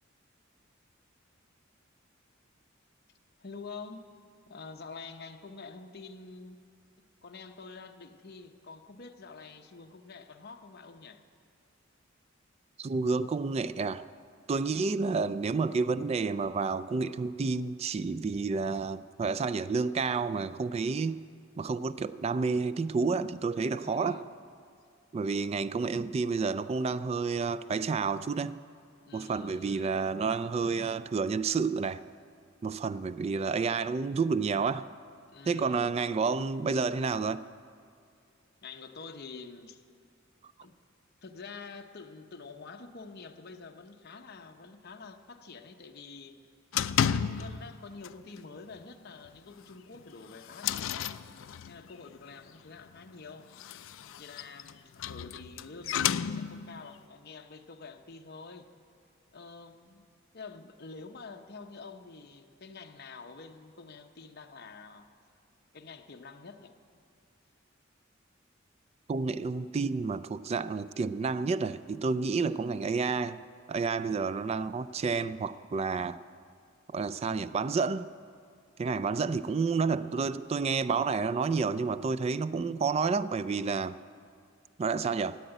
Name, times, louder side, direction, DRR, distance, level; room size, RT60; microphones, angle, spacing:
voice 1, 3.4-4.1 4.5-6.6 7.0-11.2 14.5-14.9 23.7-24.3 29.0-30.0 35.3-35.9 38.6-39.8 40.6-40.7 41.2-46.4 47.0-51.1 51.6-53.5 54.2-58.7 59.3-60.0 60.3-65.0 65.7-66.7 72.4-72.6, left 4 dB, 50° left, 0.9 m, -47 dB
voice 2, 12.8-14.0 14.5-21.2 21.6-24.2 25.1-28.6 29.1-32.0 32.6-34.9 35.5-37.4 69.1-73.4 73.7-76.2 76.9-78.1 78.8-84.0 84.8-85.4, right 4 dB, 30° right, 0.3 m, -30 dB
sound 1, 46.7-47.8 48.0-48.4 48.7-48.8 49.2-49.3 50.0-51.9 53.4-56.8, left 8 dB, 70° left, 0.4 m, -32 dB
14.0 x 8.8 x 9.2 m
head